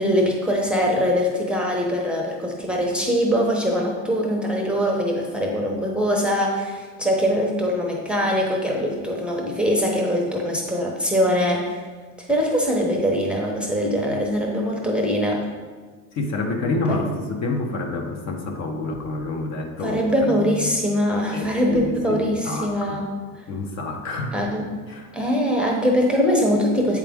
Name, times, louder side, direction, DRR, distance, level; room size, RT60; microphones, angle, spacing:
voice 1, 0.0-11.7 12.2-15.4 16.9-17.1 19.8-23.1 23.3-23.4 24.3-24.7 25.1-27.0, equal, 5° right, -1 dB, 0.8 m, -22 dB
voice 2, 16.1-20.7 21.3-23.0 23.5-24.4 24.9-25.2, left 2 dB, 45° left, 3 dB, 1.0 m, -28 dB
8.0 x 4.9 x 3.5 m, 1.5 s
cardioid pair, 130°, 38 cm